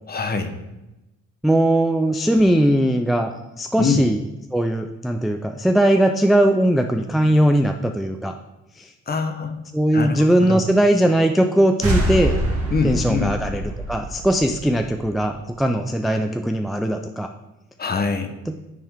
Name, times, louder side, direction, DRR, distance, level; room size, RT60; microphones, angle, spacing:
voice 1, 0.1-0.5 3.8-4.0 9.1-9.5 9.9-10.6 12.7-13.3 17.8-18.3, left 4 dB, 30° left, 7 dB, 0.9 m, -23 dB
voice 2, 1.4-4.2 4.5-8.3 8.8-8.9 9.7-12.4 12.8-13.6 13.9-17.3, right 1 dB, ahead, 5 dB, 0.3 m, -19 dB
sound 1, 11.8-15.3, right 1 dB, 50° right, 2.0 m, -25 dB
10.0 x 3.5 x 3.5 m, 1.0 s
cardioid pair, 90°, 30 cm